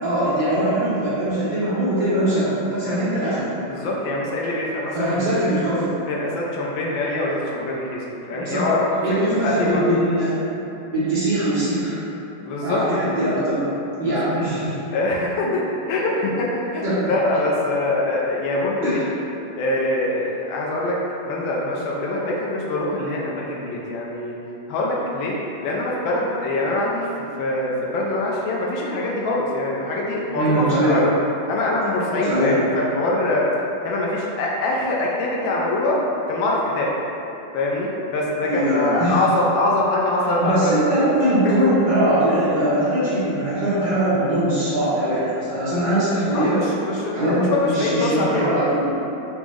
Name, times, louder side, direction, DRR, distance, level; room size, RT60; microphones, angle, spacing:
voice 1, 0.0-3.5 4.9-6.0 8.3-8.7 9.0-10.6 10.9-12.0 12.6-13.6 14.0-14.8 16.8-17.1 18.8-19.0 30.3-31.0 32.3-32.6 38.5-39.2 40.4-46.6 47.1-48.9, right 1 dB, 75° right, -12 dB, 0.4 m, -21 dB
voice 2, 3.6-5.5 6.1-9.8 12.4-12.8 14.0-14.2 14.9-15.6 15.9-19.0 19.6-20.9 21.2-24.4 24.7-25.3 25.6-31.1 31.5-33.5 33.8-36.0 36.3-36.9 37.5-40.9 41.4-41.5 46.3-48.5, left 2 dB, 90° left, -3 dB, 1.3 m, -24 dB
4.8 x 2.0 x 3.4 m, 3.0 s
omnidirectional pair, 2.1 m